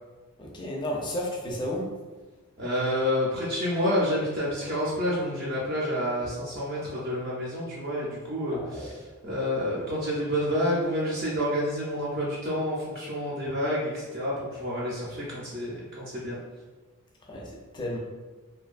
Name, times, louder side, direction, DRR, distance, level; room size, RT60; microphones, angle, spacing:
voice 1, 0.4-1.8 8.5-8.9 17.3-18.0, left 1 dB, 20° left, -2 dB, 0.4 m, -33 dB
voice 2, 2.6-16.4, equal, 45° right, -6 dB, 0.5 m, -29 dB
2.5 x 2.2 x 2.4 m, 1.2 s
head